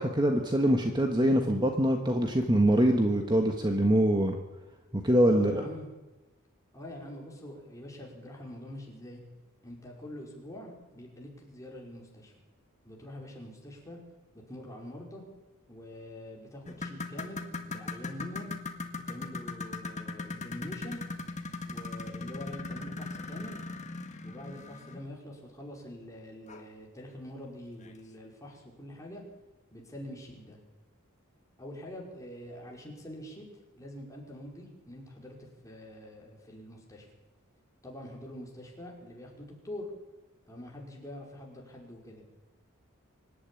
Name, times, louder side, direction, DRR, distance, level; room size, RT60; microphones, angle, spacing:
voice 1, 0.0-4.4 4.9-5.6, right 1 dB, 20° right, 4 dB, 1.5 m, -24 dB
voice 2, 5.3-5.9 6.7-9.2 9.6-12.3 12.8-14.0 14.3-15.2 15.7-18.5 19.1-21.0 21.7-23.6 24.2-29.2 29.7-30.6 31.6-33.4 33.7-37.1 37.8-39.9 40.5-42.2, left 1 dB, 15° left, -2 dB, 5.3 m, -45 dB
sound 1, 16.7-25.1 26.5-26.6 27.1-27.2 27.8-27.9, left 3 dB, 35° left, 1.8 m, -39 dB
25.0 x 11.5 x 10.0 m, 1.1 s
head